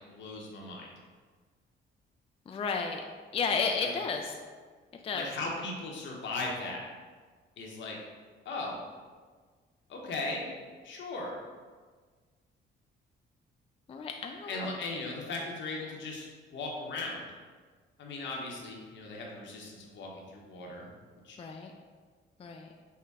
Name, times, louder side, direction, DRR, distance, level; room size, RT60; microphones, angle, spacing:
voice 1, 0.1-0.9 3.8-3.9 5.1-6.8 7.6-8.0 8.4-8.8 9.9-10.5 10.8-11.4 14.5-17.3 18.0-20.9 21.2-21.4, left 2 dB, 70° left, -1 dB, 0.9 m, -38 dB
voice 2, 2.5-3.0 3.3-4.4 5.0-5.3 13.9-14.7 21.4-21.7 22.4-22.7, left 5 dB, 30° left, 3 dB, 0.3 m, -32 dB
5.6 x 2.1 x 3.5 m, 1.5 s
cardioid pair, 90°, 20 cm